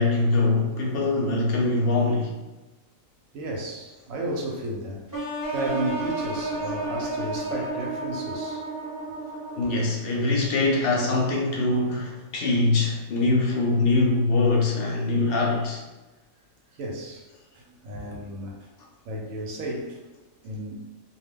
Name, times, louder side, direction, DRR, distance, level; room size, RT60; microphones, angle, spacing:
voice 1, 0.0-2.4 9.6-15.8, left 2 dB, 65° left, 0.6 m, -23 dB
voice 2, 3.3-8.6 16.8-17.3 17.5-18.6 19.1-20.0 20.4-20.8, right 1 dB, 85° right, 1.0 m, -33 dB
sound 1, 5.1-10.0, right 2 dB, 25° right, 0.4 m, -31 dB
2.3 x 2.2 x 3.4 m
omnidirectional pair, 1.4 m